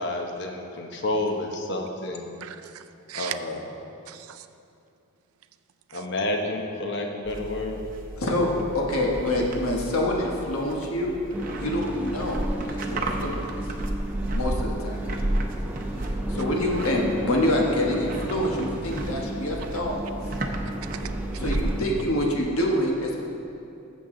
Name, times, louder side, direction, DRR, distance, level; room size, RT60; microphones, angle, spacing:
voice 1, 0.0-2.3 3.1-3.6 5.9-7.8, left 2 dB, 50° left, 2 dB, 1.0 m, -29 dB
voice 2, 2.4-3.3 4.1-4.5 5.9-6.0 20.9-21.4, right 11 dB, 85° right, 10 dB, 0.5 m, -39 dB
sound 1, 7.3-21.8, right 1 dB, 40° right, 0.7 m, -33 dB
voice 3, 8.2-11.2 11.6-13.4 14.3-15.0 16.3-20.0 20.3-20.4 21.4-23.2, left 1 dB, 80° left, -1 dB, 1.5 m, -26 dB
sound 2, 11.3-21.9, right 1 dB, 5° right, 0.5 m, -35 dB
14.5 x 7.3 x 3.9 m, 2.7 s
head